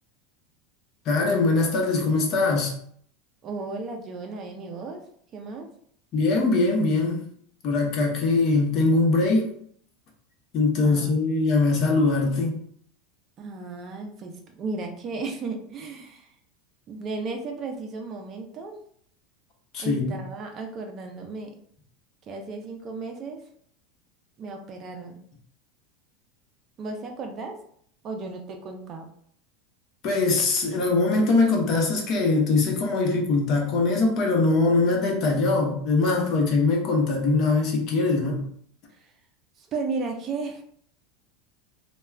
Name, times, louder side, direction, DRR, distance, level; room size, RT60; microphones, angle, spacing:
voice 1, 1.1-2.7 6.1-7.2 7.6-9.5 10.5-12.6 19.7-20.2 30.0-38.4, left 3 dB, 45° left, 1 dB, 0.7 m, -22 dB
voice 2, 3.4-5.0 5.3-5.7 10.8-11.2 13.4-16.3 16.9-18.8 19.8-21.5 22.3-23.4 24.4-25.2 26.8-27.6 28.0-29.1 38.9-39.1 39.6-40.6, right 3 dB, 35° right, 3 dB, 0.4 m, -34 dB
2.2 x 2.2 x 3.2 m, 0.62 s
supercardioid pair, 135°, 0 cm